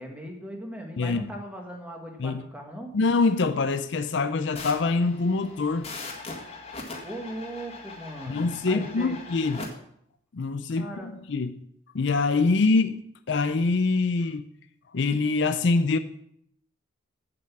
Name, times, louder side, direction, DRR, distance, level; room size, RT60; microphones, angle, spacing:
voice 1, 0.0-3.0 6.9-9.2 10.8-11.1, right 1 dB, 5° right, 1.6 m, -39 dB
voice 2, 1.0-1.3 2.2-2.4 2.9-5.9 8.3-9.6 10.3-11.6 11.9-13.0 13.3-14.4 14.9-16.0, left 3 dB, 60° left, 0.5 m, -24 dB
sound 1, 4.5-9.7, left 3 dB, 30° left, 1.8 m, -40 dB
8.0 x 7.4 x 6.0 m
head